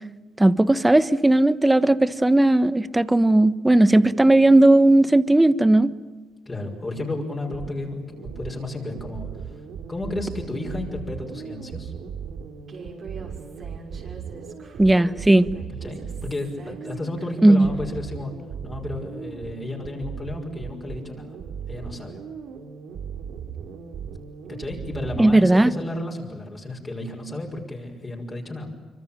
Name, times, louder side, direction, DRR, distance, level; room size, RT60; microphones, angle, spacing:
voice 1, 0.4-5.9 14.8-15.5 17.4-17.7 25.2-25.7, right 1 dB, 10° right, 15 dB, 1.2 m, -16 dB
voice 2, 6.5-9.6 9.9-11.9 15.8-18.3 18.6-21.4 21.7-22.2 23.4-23.5 24.5-28.7, left 2 dB, 25° left, 0 dB, 5.8 m, -33 dB
sound 1, 6.9-25.4, right 7 dB, 80° right, 3.1 m, -37 dB
Human voice, 12.7-17.9, right 4 dB, 50° right, 6.1 m, -44 dB
25.5 x 25.0 x 9.0 m, 1.3 s
cardioid pair, 90°, 0 cm